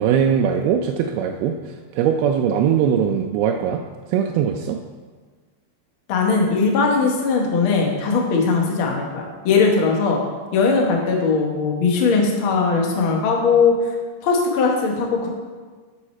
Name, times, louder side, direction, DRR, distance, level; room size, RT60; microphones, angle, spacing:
voice 1, 0.0-1.5 1.9-3.8 4.1-4.8, right 8 dB, 90° right, 2 dB, 2.5 m, -20 dB
voice 2, 6.1-10.2 10.5-13.8 14.2-15.3, left 4 dB, 75° left, 0 dB, 1.2 m, -19 dB
11.0 x 6.4 x 4.3 m, 1.4 s
omnidirectional pair, 4.3 m